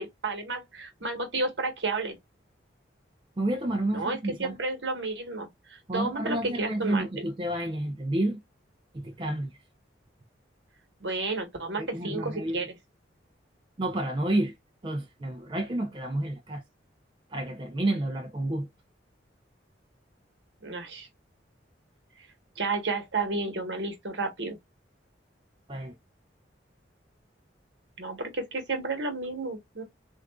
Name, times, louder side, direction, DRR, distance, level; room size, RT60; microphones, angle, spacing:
voice 1, 0.0-2.2 3.9-7.1 11.0-12.7 20.6-21.1 22.6-24.6 28.0-29.8, right 3 dB, 70° right, 1.2 m, -32 dB
voice 2, 3.4-4.5 5.9-8.4 8.9-9.5 11.8-12.7 13.8-14.5 14.8-16.6 17.3-18.7 25.7-26.0, right 1 dB, 25° right, 0.5 m, -30 dB
3.5 x 2.5 x 2.2 m
head